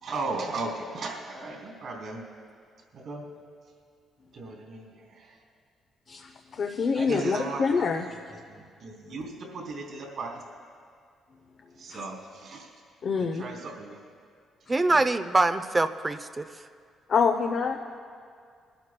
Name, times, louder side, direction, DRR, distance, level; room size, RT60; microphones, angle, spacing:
voice 1, 0.0-2.2 2.9-3.2 4.3-5.3 7.0-7.9 8.8-10.4 11.8-12.7 13.2-14.0 14.9-15.0, right 3 dB, 65° right, -1 dB, 3.2 m, -36 dB
voice 2, 6.1-8.1 9.1-9.2 11.9-12.0 13.0-13.4 17.1-17.8, left 5 dB, 55° left, 3 dB, 0.7 m, -26 dB
voice 3, 14.7-16.5, right 2 dB, 25° right, 11 dB, 0.5 m, -24 dB
23.0 x 12.0 x 2.2 m, 2.2 s
cardioid pair, 90°, 0 cm